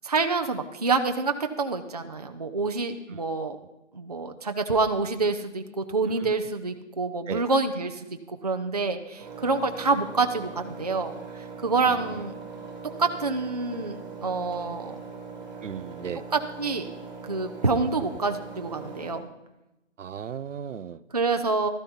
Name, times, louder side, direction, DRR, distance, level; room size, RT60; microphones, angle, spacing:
voice 1, 0.0-3.6 3.9-12.3 13.0-15.0 16.3-16.9 17.2-19.3 21.1-21.7, right 4 dB, 35° right, 6 dB, 0.5 m, -27 dB
Engine, 9.2-19.1, right 4 dB, 15° right, 2.2 m, -41 dB
voice 2, 11.9-12.2 15.6-16.2 20.0-21.0, right 8 dB, 80° right, 16 dB, 0.6 m, -36 dB
13.0 x 11.5 x 4.2 m, 0.94 s
hypercardioid pair, 175°, 37 cm